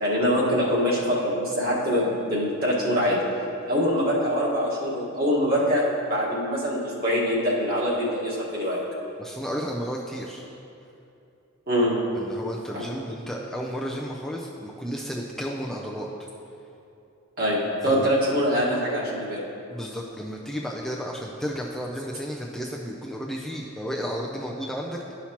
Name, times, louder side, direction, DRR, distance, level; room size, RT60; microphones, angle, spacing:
voice 1, 0.0-3.2 3.7-8.8 11.7-11.9 12.7-12.8 17.4-19.4, equal, 50° right, -5 dB, 1.5 m, -24 dB
voice 2, 9.2-10.4 12.1-16.3 17.8-18.1 19.7-25.1, equal, ahead, -3 dB, 0.4 m, -33 dB
11.0 x 5.7 x 2.9 m, 2.8 s
head